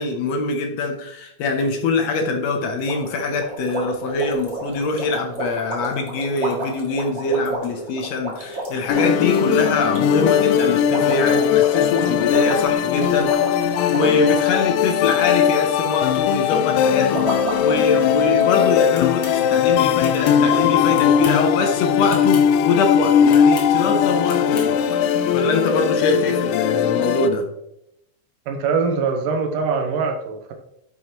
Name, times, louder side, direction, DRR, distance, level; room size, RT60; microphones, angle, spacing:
voice 1, 0.0-13.4 13.9-17.3 17.6-25.1 25.3-27.5, left 3 dB, 70° left, 4 dB, 1.8 m, -23 dB
sound 1, 2.9-15.6 15.9-16.3 16.8-18.8 19.0-19.1 19.5-19.6 20.1-20.2 20.5-20.7, right 2 dB, 30° right, 1.4 m, -32 dB
sound 2, 8.9-27.3, left 8 dB, 90° left, 2.2 m, -19 dB
sound 3, 18.9-19.4 20.0-20.4 20.9-21.5 22.1-22.5 23.3-23.7 24.3-24.7, left 4 dB, 50° left, 1.7 m, -36 dB
voice 2, 28.5-30.5, right 5 dB, 80° right, 4 dB, 2.6 m, -23 dB
9.9 x 6.2 x 3.0 m, 0.78 s
omnidirectional pair, 3.8 m